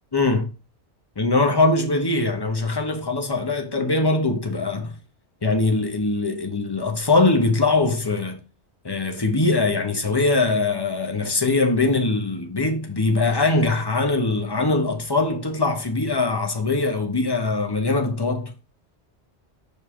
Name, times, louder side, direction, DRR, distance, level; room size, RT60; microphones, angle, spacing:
voice 1, 0.1-0.5 1.2-5.0 5.4-8.4 8.8-18.5, left 3 dB, 25° left, 1.0 m, -22 dB
5.3 x 5.0 x 3.7 m
omnidirectional pair, 1.2 m